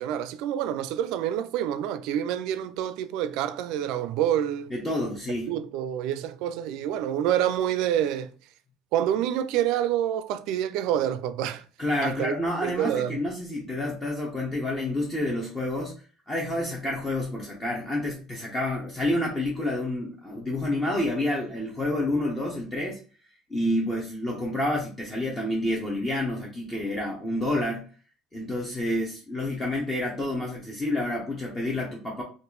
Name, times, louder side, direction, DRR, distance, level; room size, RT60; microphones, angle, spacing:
voice 1, 0.0-4.7 5.5-8.3 8.9-11.6 12.0-12.3 12.6-13.2, right 11 dB, 70° right, 0.3 m, -27 dB
voice 2, 4.7-5.5 11.8-23.0 23.5-27.9 28.3-32.2, left 1 dB, 20° left, 0.8 m, -29 dB
2.7 x 2.4 x 3.8 m
cardioid pair, 120°, 0 cm